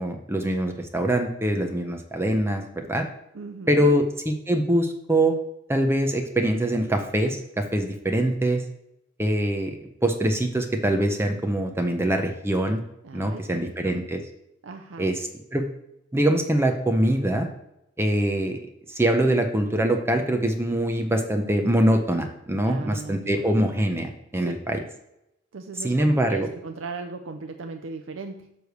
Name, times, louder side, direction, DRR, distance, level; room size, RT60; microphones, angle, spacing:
voice 1, 0.0-3.1 3.7-5.3 5.7-8.6 9.2-12.8 13.1-14.2 15.0-15.7 16.1-17.5 18.0-24.8 25.8-26.5, right 1 dB, 15° right, 4 dB, 0.7 m, -24 dB
voice 2, 3.3-4.0 13.0-14.0 14.6-15.1 22.6-23.5 24.4-24.5 25.5-28.6, right 4 dB, 85° right, 6 dB, 0.6 m, -38 dB
9.5 x 3.4 x 6.6 m, 0.83 s
head